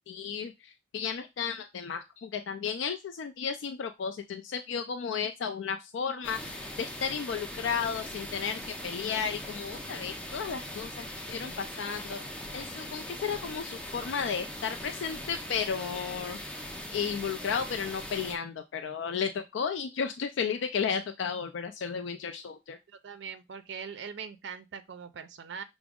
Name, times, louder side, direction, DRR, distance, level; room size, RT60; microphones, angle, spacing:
voice 1, 0.1-16.4 16.9-22.8, left 6 dB, 80° left, 0.4 m, -33 dB
sound 1, 6.2-18.3, left 1 dB, 5° left, 0.5 m, -40 dB
voice 2, 22.9-25.6, right 6 dB, 70° right, 0.4 m, -41 dB
5.9 x 2.0 x 3.5 m
head